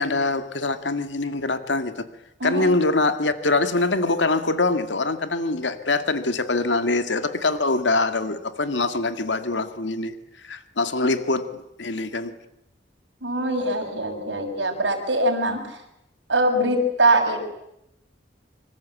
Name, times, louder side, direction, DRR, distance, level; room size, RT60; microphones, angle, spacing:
voice 1, 0.0-1.9 2.4-10.1 10.4-11.5 11.8-12.3, left 2 dB, 90° left, 9 dB, 2.1 m, -24 dB
voice 2, 13.2-15.8 16.3-17.5, right 1 dB, 85° right, 3 dB, 6.4 m, -22 dB
26.0 x 25.5 x 8.5 m, 0.84 s
head